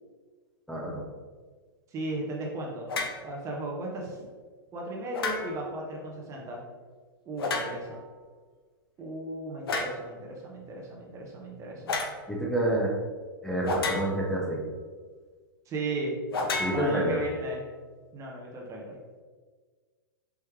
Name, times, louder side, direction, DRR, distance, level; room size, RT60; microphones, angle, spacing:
voice 1, 0.7-1.0 12.3-12.9 13.4-14.6 16.6-17.2, right 1 dB, 5° left, -4 dB, 0.8 m, -28 dB
voice 2, 1.9-2.9 3.2-4.2 4.7-6.6 7.3-8.0 9.0-12.0 15.7-16.1 16.7-17.6 18.1-19.0, right 1 dB, 25° right, -1 dB, 0.8 m, -36 dB
sound 1, 2.9-3.2 5.1-5.7 7.4-8.0 9.7-10.0 11.9-12.2 13.6-14.4 16.3-17.4, left 3 dB, 85° left, 0.7 m, -32 dB
4.7 x 3.1 x 3.5 m, 1.5 s
hypercardioid pair, 125°, 12 cm